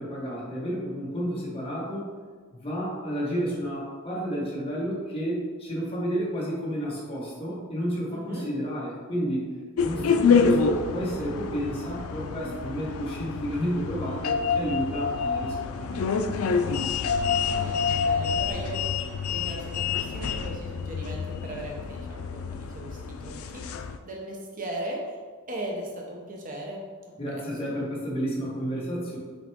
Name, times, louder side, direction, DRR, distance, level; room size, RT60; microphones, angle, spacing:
voice 1, 0.0-2.1 2.5-9.5 9.8-16.1 27.2-29.2, equal, 25° left, -6 dB, 1.6 m, -31 dB
voice 2, 8.1-8.5 17.1-17.2 17.4-25.2 25.5-26.8 27.3-27.8, right 1 dB, 40° right, -1 dB, 0.9 m, -38 dB
sound 1, 9.8-24.0, left 5 dB, 85° left, 0.4 m, -27 dB
6.2 x 4.2 x 3.6 m, 1.5 s
head